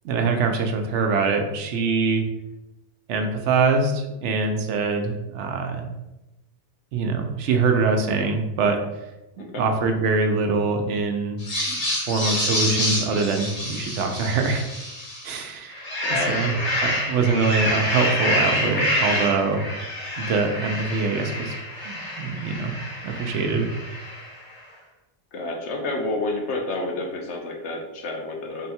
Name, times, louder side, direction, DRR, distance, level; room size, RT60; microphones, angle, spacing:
voice 1, 0.0-2.2 3.1-5.9 6.9-8.8 9.4-11.4 11.7-14.6 15.2-15.9 16.3-16.5 16.8-19.6 20.2-21.5 21.9-22.7 23.0-23.7, right 4 dB, 80° right, 4 dB, 0.9 m, -24 dB
voice 2, 9.4-9.7 16.0-16.7 25.3-28.7, left 2 dB, 75° left, 1 dB, 1.0 m, -30 dB
sound 1, 11.4-15.3 15.7-24.4, left 1 dB, 35° left, 0.9 m, -27 dB
3.8 x 2.2 x 4.2 m, 0.97 s
omnidirectional pair, 1.2 m